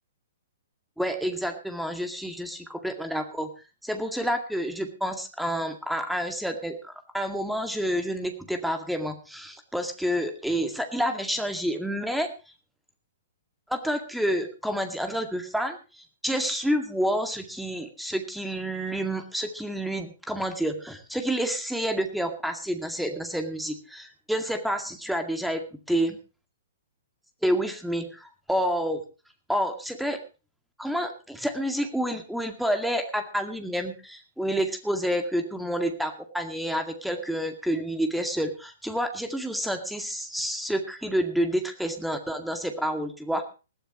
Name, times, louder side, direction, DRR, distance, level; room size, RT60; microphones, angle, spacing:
voice 1, 1.0-3.5 3.8-12.3 13.7-25.6 25.9-26.2 27.4-29.0 29.5-30.2 30.8-43.4, equal, ahead, 6 dB, 2.1 m, -29 dB
20.0 x 14.5 x 3.1 m, 0.33 s
figure-of-eight pair, 115°, 0 cm